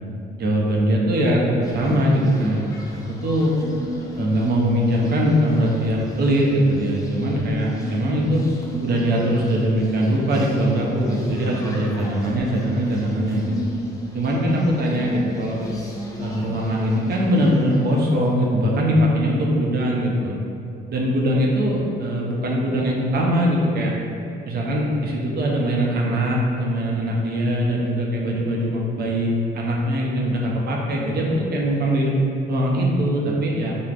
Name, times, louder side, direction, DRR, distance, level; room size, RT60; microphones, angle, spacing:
voice 1, 0.4-2.6 2.9-3.5 4.2-8.4 8.8-13.5 14.1-15.6 16.2-20.4 20.9-23.9 24.5-32.1 32.5-33.8, equal, 55° right, -2 dB, 0.5 m, -21 dB
sound 1, 1.6-18.3, left 1 dB, 15° left, 0.4 m, -34 dB
3.2 x 2.0 x 2.4 m, 2.6 s
cardioid pair, 90°, 20 cm